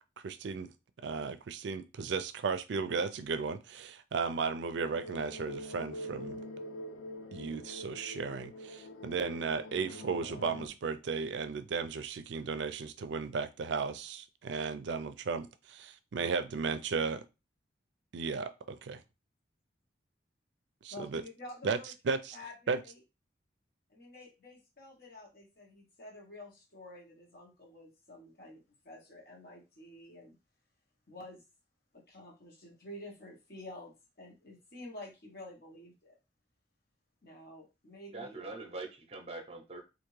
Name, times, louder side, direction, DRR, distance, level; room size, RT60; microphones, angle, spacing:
voice 1, 0.2-0.7 1.0-6.4 7.3-17.2 18.1-19.0 20.8-21.2 21.6-21.8 22.1-22.4 22.7-22.8, right 5 dB, 75° right, 0.4 m, -35 dB
sound 1, 4.8-10.7, left 1 dB, 85° left, 0.5 m, -45 dB
voice 2, 20.9-21.9 22.3-23.0 23.9-30.3 31.1-31.4 31.9-36.1 37.2-38.4, left 1 dB, 55° left, 1.0 m, -49 dB
voice 3, 38.1-39.8, right 2 dB, 30° right, 0.7 m, -43 dB
3.4 x 2.5 x 3.1 m
head